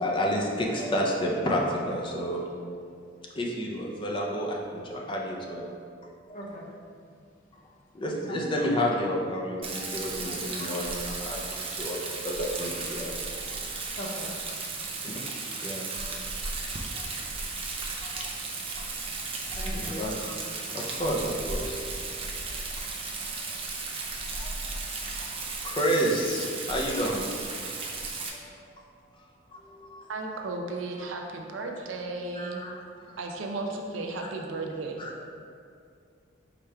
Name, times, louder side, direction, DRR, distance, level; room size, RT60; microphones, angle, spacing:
voice 1, 0.0-2.4 2.8-3.0 3.4-5.8 7.9-13.7 15.0-15.3 15.6-16.2 16.9-17.1 18.0-18.3 18.8-18.9 19.1-19.2 19.5-20.3 20.7-22.2 22.8-22.9 24.3-27.7 28.4-28.5 29.5-30.1 31.6-31.7 32.3-32.8 33.1-33.2 34.2-34.3 35.0-35.1, equal, 25° left, -1 dB, 0.5 m, -31 dB
voice 2, 6.3-6.7 8.3-8.7 14.0-14.4 17.2-17.7 19.5-20.1, equal, 40° left, -4 dB, 0.8 m, -40 dB
Rain, 9.6-28.3, right 3 dB, 30° right, 0.4 m, -35 dB
voice 3, 30.1-32.6 33.2-35.0, right 3 dB, 90° right, 2 dB, 0.5 m, -34 dB
4.9 x 2.3 x 4.3 m, 2.3 s
head